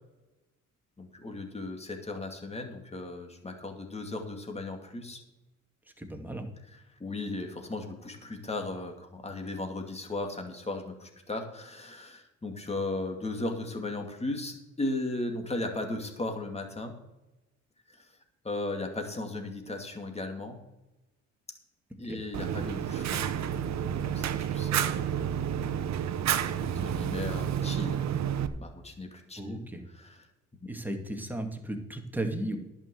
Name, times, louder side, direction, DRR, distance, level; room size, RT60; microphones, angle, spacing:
voice 1, 1.0-5.2 7.0-16.9 17.9-18.1 18.4-20.6 22.0-23.4 24.0-25.1 26.6-28.0 28.6-29.6 30.0-30.1 30.6-30.7, left 2 dB, 20° left, 3 dB, 2.4 m, -36 dB
voice 2, 6.0-6.5 22.0-22.2 29.4-29.8 30.7-32.6, right 1 dB, 5° right, 3 dB, 2.0 m, -35 dB
Fire, 22.3-28.5, right 9 dB, 65° right, 0.8 m, -30 dB
11.0 x 6.1 x 7.8 m, 0.98 s
cardioid pair, 90°, 30 cm